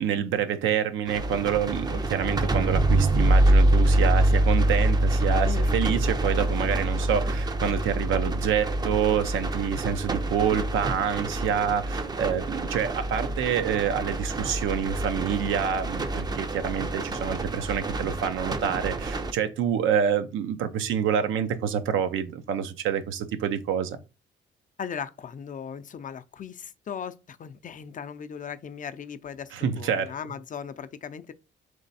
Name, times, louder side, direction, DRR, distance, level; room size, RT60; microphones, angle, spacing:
voice 1, 0.0-24.0 29.5-30.1, right 8 dB, 85° right, 0.7 m, -27 dB
sound 1, 1.1-19.3, right 1 dB, 20° right, 0.5 m, -25 dB
voice 2, 24.8-31.3, left 7 dB, 40° left, 0.5 m, -38 dB
3.3 x 3.2 x 4.1 m
cardioid pair, 90°, 20 cm